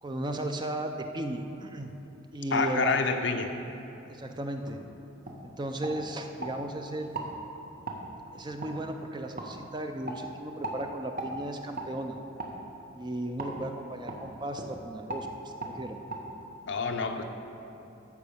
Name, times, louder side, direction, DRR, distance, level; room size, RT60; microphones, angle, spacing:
voice 1, 0.0-1.9 2.3-3.0 4.1-4.8 5.4-7.1 8.3-12.2 13.0-16.0, right 1 dB, 20° right, 5 dB, 0.5 m, -35 dB
voice 2, 2.5-3.5 16.6-17.2, left 4 dB, 55° left, 5 dB, 0.7 m, -27 dB
sound 1, 4.7-4.8 5.2-5.4 5.8-6.5 7.1-7.3 7.9-8.0 8.6-8.7 9.4-9.5 10.0-10.2 10.6-10.8 11.2-11.3 11.7-11.9 12.4-12.6 13.4-13.5 14.1-14.2 14.5-14.7 15.1-15.3 15.6-15.7 16.1-16.2, right 2 dB, 40° right, 1.1 m, -37 dB
13.0 x 4.7 x 7.0 m, 2.9 s
head